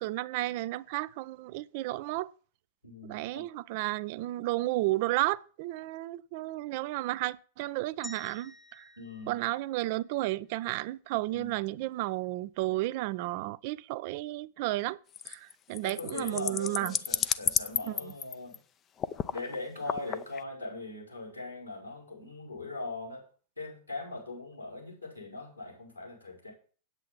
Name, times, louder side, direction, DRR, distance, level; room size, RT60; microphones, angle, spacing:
voice 1, 0.0-2.3 3.1-8.8 9.3-15.0 15.2-16.9 17.8-18.1, right 17 dB, 50° right, 0.4 m, -33 dB
voice 2, 2.8-3.5 9.0-9.4 11.3-11.7 15.8-18.6 19.3-23.2 23.6-26.5, left 2 dB, 90° left, 5.0 m, -40 dB
sound 1, 8.0-10.3, left 1 dB, 5° left, 0.9 m, -50 dB
sound 2, 15.1-18.6 19.0-19.5 19.8-20.4, left 9 dB, 30° left, 0.5 m, -32 dB
8.5 x 8.3 x 7.1 m
figure-of-eight pair, 90°, 0 cm